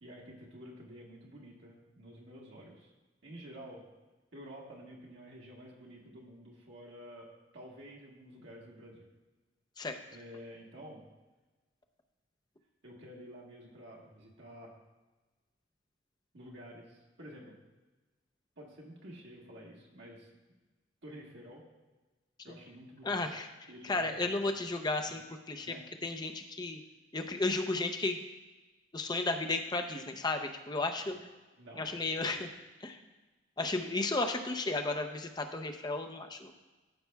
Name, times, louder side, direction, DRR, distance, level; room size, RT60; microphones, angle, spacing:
voice 1, 0.0-2.9 3.2-3.8 4.3-9.0 10.1-11.0 12.8-14.7 16.3-17.6 18.6-20.3 21.0-21.6 22.4-23.2 23.7-24.1 24.4-24.5 25.1-25.2 25.6-25.8 27.2-27.3 31.1-31.2 31.6-32.0, equal, 70° right, -4 dB, 1.5 m, -50 dB
voice 2, 23.0-25.7 26.0-26.8 27.1-28.2 28.9-31.2 31.8-32.5 32.8-33.0 33.6-36.5, left 2 dB, 20° left, 5 dB, 0.6 m, -34 dB
14.0 x 6.7 x 2.3 m, 1.2 s
head